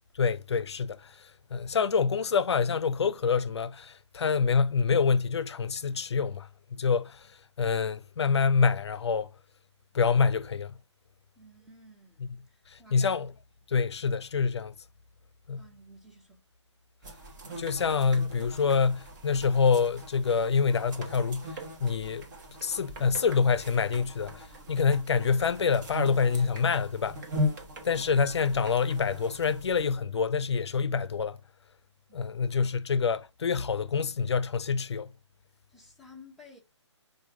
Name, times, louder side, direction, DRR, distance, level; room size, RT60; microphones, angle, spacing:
voice 1, 0.1-9.3 9.9-10.8 12.7-13.3 13.7-14.7 15.5-15.6 17.6-22.3 22.6-27.2 27.8-31.4 32.1-35.1, left 5 dB, 65° left, 0.4 m, -26 dB
voice 2, 11.4-13.2 15.6-16.4 32.1-32.6 35.7-36.6, left 1 dB, ahead, 0.5 m, -54 dB
sound 1, 17.0-30.0, left 1 dB, 40° right, 1.1 m, -39 dB
4.5 x 2.6 x 3.6 m
figure-of-eight pair, 140°, 15 cm